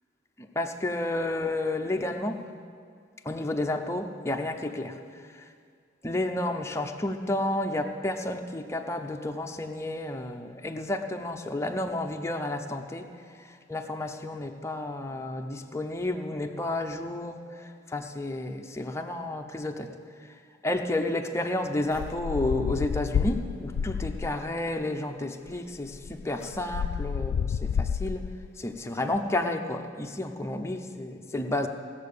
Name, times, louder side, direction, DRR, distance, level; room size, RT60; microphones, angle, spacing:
voice 1, 0.4-2.4 3.2-5.0 5.3-5.4 6.0-13.1 13.4-19.9 20.6-28.2 28.6-31.7, left 1 dB, 15° left, 4 dB, 0.7 m, -31 dB
sound 1, 21.9-24.5 25.5-25.6 25.8-28.5, left 7 dB, 75° left, 0.3 m, -30 dB
18.5 x 7.4 x 6.8 m, 2.2 s
head